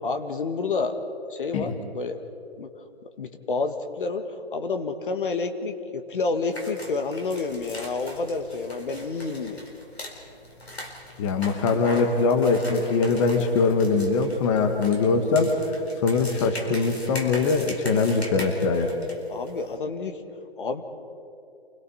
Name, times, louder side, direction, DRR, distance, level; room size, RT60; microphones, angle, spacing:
voice 1, 0.0-1.0 1.3-2.2 2.6-2.7 3.2-9.6 19.3-20.2 20.6-20.8, left 4 dB, 55° left, 7 dB, 1.7 m, -29 dB
sound 1, 6.5-19.8, left 1 dB, 90° left, 4.4 m, -41 dB
voice 2, 11.2-15.5 16.0-18.9, left 4 dB, 30° left, 6 dB, 1.6 m, -22 dB
28.0 x 22.0 x 4.3 m, 2.7 s
figure-of-eight pair, 140°, 31 cm